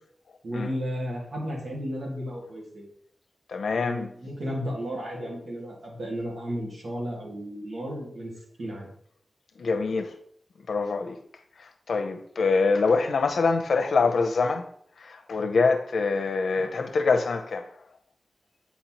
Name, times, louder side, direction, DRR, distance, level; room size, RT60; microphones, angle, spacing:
voice 1, 0.4-2.9 3.7-8.3 8.6-8.9, equal, 75° right, 2.0 m, -33 dB
voice 2, 3.5-4.1 9.6-10.1 10.7-11.2 11.6-14.6 15.0-17.7, left 4 dB, 85° left, 0.6 m, -25 dB
8.3 x 4.2 x 2.9 m
wide cardioid pair, 75°, 0 cm